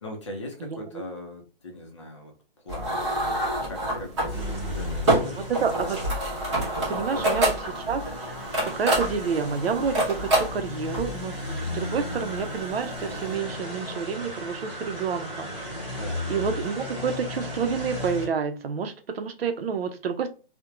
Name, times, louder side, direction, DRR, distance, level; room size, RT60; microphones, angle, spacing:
voice 1, 0.0-3.0 3.4-6.0 6.9-7.4 16.0-16.3 16.5-16.6, left 1 dB, 30° left, 1 dB, 0.5 m, -40 dB
sound 1, 2.7-13.2, right 1 dB, 30° right, 0.9 m, -27 dB
sound 2, 4.3-18.3, left 1 dB, ahead, 1.3 m, -35 dB
voice 2, 5.6-6.0 6.9-7.5 7.9-15.7 16.3-20.3, right 6 dB, 90° right, 8 dB, 0.5 m, -29 dB
2.9 x 2.1 x 2.3 m, 0.35 s
hypercardioid pair, 170°, 29 cm